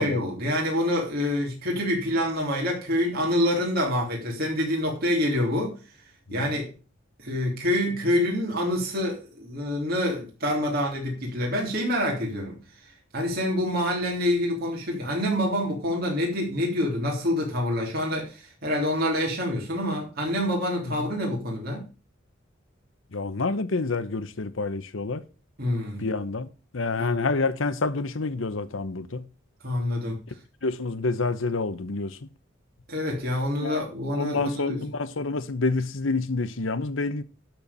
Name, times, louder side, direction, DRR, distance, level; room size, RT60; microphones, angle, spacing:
voice 1, 0.0-5.8 6.3-6.7 7.2-12.6 13.1-21.8 25.6-26.1 27.0-27.3 29.6-30.2 32.9-34.8, left 1 dB, 50° right, 3.4 m, -26 dB
voice 2, 23.1-25.2 26.0-26.5 26.7-29.2 30.6-32.2 33.6-33.8 34.1-37.2, left 3 dB, 80° left, 0.9 m, -28 dB
12.0 x 4.5 x 7.1 m
head